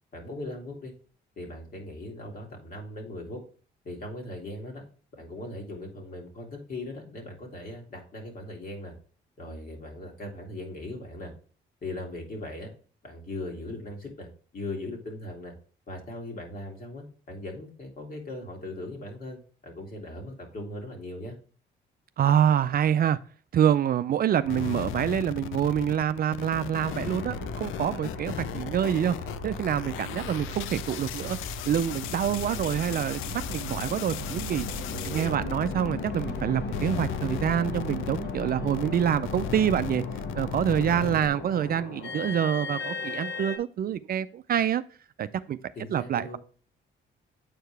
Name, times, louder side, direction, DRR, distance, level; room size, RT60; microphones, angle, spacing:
voice 1, 0.1-0.9 1.4-3.4 3.8-4.8 5.2-8.9 9.4-11.3 11.8-12.7 13.0-15.5 15.9-21.4 34.9-35.5 40.7-41.2 45.8-46.4, left 1 dB, 45° left, 2.3 m, -39 dB
voice 2, 22.2-23.2 23.5-29.2 29.4-34.7 35.0-40.0 40.3-44.8 45.2-45.6 45.9-46.4, right 9 dB, 50° right, 0.4 m, -26 dB
sound 1, 24.5-36.4 36.7-41.3, left 13 dB, 85° left, 0.4 m, -37 dB
sound 2, 26.9-43.6, left 3 dB, 60° left, 1.2 m, -36 dB
7.9 x 4.6 x 3.2 m
cardioid pair, 90°, 20 cm